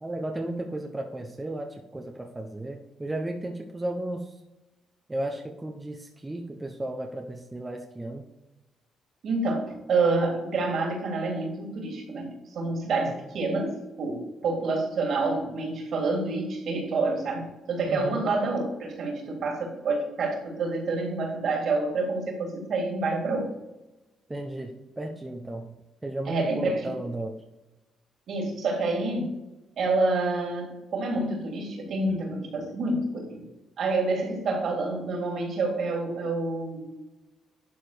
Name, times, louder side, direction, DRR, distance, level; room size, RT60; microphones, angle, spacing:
voice 1, 0.0-4.4 5.1-8.3 13.0-13.1 17.9-18.3 24.3-27.4, right 1 dB, 15° right, 2 dB, 1.1 m, -34 dB
voice 2, 9.2-23.5 26.3-26.9 28.3-29.4 29.8-33.4 33.8-36.9, right 3 dB, 65° right, 1 dB, 3.5 m, -28 dB
11.5 x 4.2 x 6.9 m, 1.0 s
cardioid pair, 90°, 0 cm